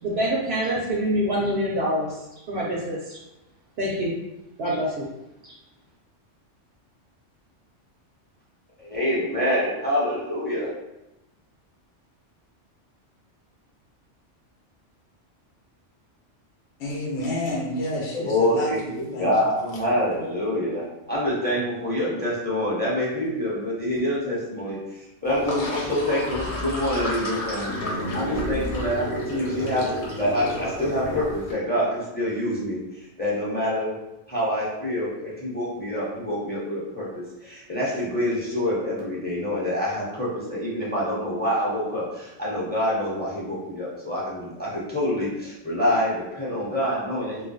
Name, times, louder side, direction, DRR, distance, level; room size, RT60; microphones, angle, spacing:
voice 1, 0.0-2.2 2.5-3.2 3.8-4.1 4.6-5.1, equal, 65° right, -4 dB, 0.8 m, -25 dB
voice 2, 8.8-10.7 18.1-27.7 28.1-33.9 34.3-47.4, left 1 dB, 10° left, -7 dB, 0.8 m, -26 dB
voice 3, 16.8-19.3 19.6-19.8, left 1 dB, 70° left, -2 dB, 0.9 m, -30 dB
Sink (filling or washing), 25.2-31.5, left 1 dB, 45° left, 1.0 m, -31 dB
2.3 x 2.2 x 3.9 m, 0.94 s
omnidirectional pair, 1.3 m